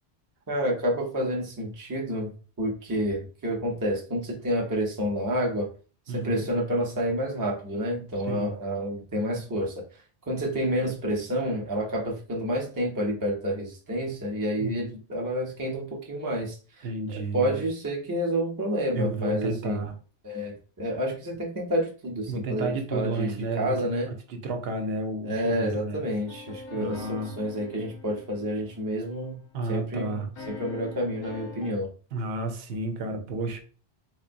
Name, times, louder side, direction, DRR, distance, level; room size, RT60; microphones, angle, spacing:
voice 1, 0.5-5.7 6.1-19.8 20.2-24.1 25.2-29.4 29.7-31.9, equal, 25° right, 0 dB, 0.5 m, -29 dB
voice 2, 6.1-6.4 8.3-8.5 14.6-14.8 16.8-17.6 18.9-19.9 22.3-23.8 24.1-26.0 26.7-27.3 29.5-30.3 32.1-33.6, right 2 dB, 70° right, 5 dB, 0.8 m, -31 dB
sound 1, 26.3-29.5 30.4-31.7, left 4 dB, 40° left, 0.4 m, -44 dB
4.0 x 2.2 x 2.5 m, 0.38 s
omnidirectional pair, 1.1 m